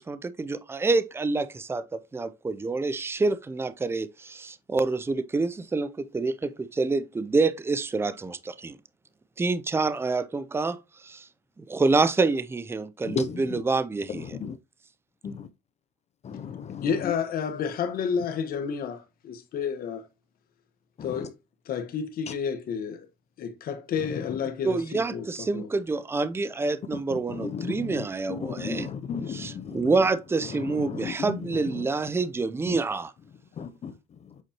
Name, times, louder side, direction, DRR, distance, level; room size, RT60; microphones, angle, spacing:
voice 1, 0.0-1.8 2.1-8.8 9.4-10.8 11.0-11.3 11.6-14.4 24.6-28.9 29.3-33.1, right 3 dB, 15° right, 0.5 m, -27 dB
voice 2, 13.1-13.4 14.1-14.6 15.2-15.5 16.2-17.1 21.0-21.3 24.3-24.4 26.9-29.9 30.5-31.9 32.7-32.8 33.6-33.9, left 7 dB, 40° left, 0.6 m, -35 dB
voice 3, 16.8-20.0 21.0-21.4 21.7-23.1 23.4-25.7, left 7 dB, 60° left, 1.3 m, -30 dB
8.0 x 4.3 x 2.9 m
cardioid pair, 110°, 17 cm